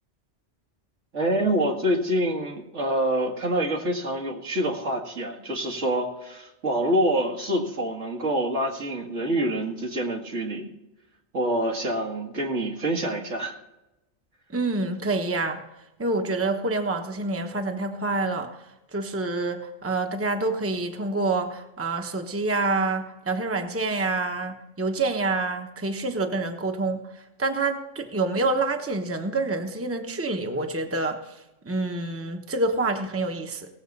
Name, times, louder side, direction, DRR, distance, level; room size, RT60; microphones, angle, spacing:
voice 1, 1.1-10.7 11.3-13.6, right 1 dB, 80° right, 0 dB, 2.3 m, -26 dB
voice 2, 14.5-15.6 16.0-18.5 18.9-27.0 27.4-31.2 31.6-33.7, right 3 dB, 15° right, 4 dB, 0.9 m, -27 dB
18.0 x 7.3 x 5.3 m, 0.94 s
omnidirectional pair, 1.2 m